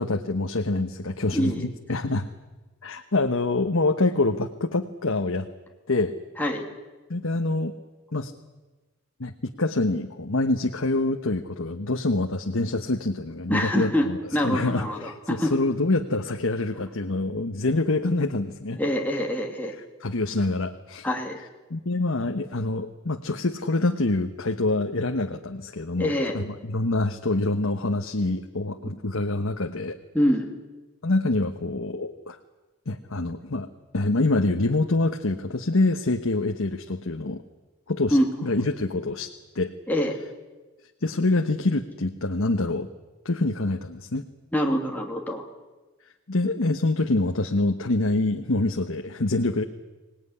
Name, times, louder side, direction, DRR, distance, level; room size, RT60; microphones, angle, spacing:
voice 1, 0.0-2.3 2.8-5.5 5.9-6.1 7.1-7.7 8.1-8.3 9.2-14.2 14.4-18.8 20.0-21.1 21.7-30.0 31.0-32.4 32.9-33.7 33.9-37.4 37.9-39.7 41.0-42.9 43.2-44.2 46.3-49.6, left 2 dB, 75° left, 5 dB, 1.1 m, -26 dB
voice 2, 1.3-1.6 6.4-6.7 13.5-15.5 18.8-19.7 21.0-21.4 26.0-26.4 30.1-30.5 38.1-38.5 39.9-40.2 44.5-45.4, equal, 10° left, 0 dB, 2.7 m, -25 dB
25.0 x 18.5 x 9.9 m, 1.2 s
head